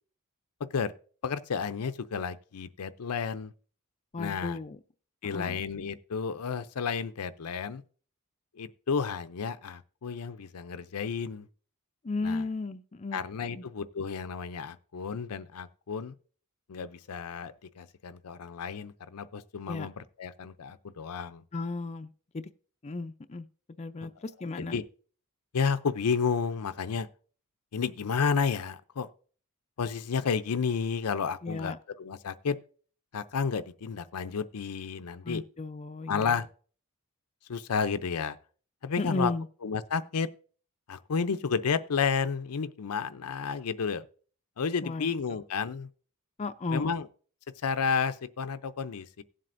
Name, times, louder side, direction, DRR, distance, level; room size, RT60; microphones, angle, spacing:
voice 1, 1.2-3.5 4.2-4.6 5.2-7.8 8.6-11.5 12.2-12.4 13.1-16.1 16.7-21.4 24.6-24.8 25.5-27.1 27.7-29.1 29.8-32.6 33.1-35.4 36.1-36.5 37.5-38.4 38.8-39.3 39.6-40.3 40.9-44.1 44.6-45.9 46.7-47.1 47.6-49.2, left 5 dB, 80° left, 0.6 m, -31 dB
voice 2, 4.1-4.8 5.2-5.6 12.0-13.2 13.5-13.6 19.7-19.9 21.5-22.5 22.8-23.5 23.8-24.8 31.4-31.8 35.2-36.4 39.0-39.5 44.8-45.4 46.4-47.0, left 3 dB, 30° left, 0.4 m, -34 dB
17.5 x 7.6 x 2.6 m
head